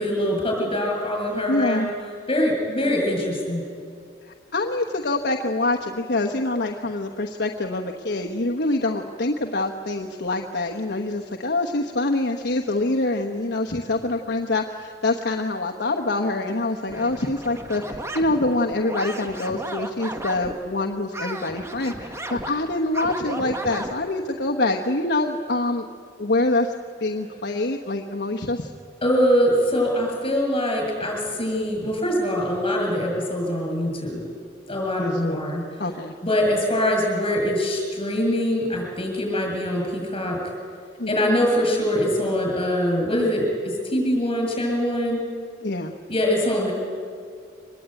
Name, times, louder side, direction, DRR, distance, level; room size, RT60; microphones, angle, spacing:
voice 1, 0.0-1.9 2.3-3.6 29.0-34.2 34.7-35.7 36.2-40.4 41.1-45.2 46.1-46.7, equal, 30° left, 1 dB, 7.5 m, -23 dB
voice 2, 1.5-1.9 4.2-25.9 26.2-26.7 27.0-28.7 35.0-35.4 35.8-36.1 41.0-41.3 45.6-45.9, left 2 dB, 65° left, 3 dB, 1.2 m, -25 dB
sound 1, 16.9-20.6 21.1-23.9, right 1 dB, 15° right, 1.6 m, -34 dB
24.5 x 20.5 x 9.1 m, 2.3 s
head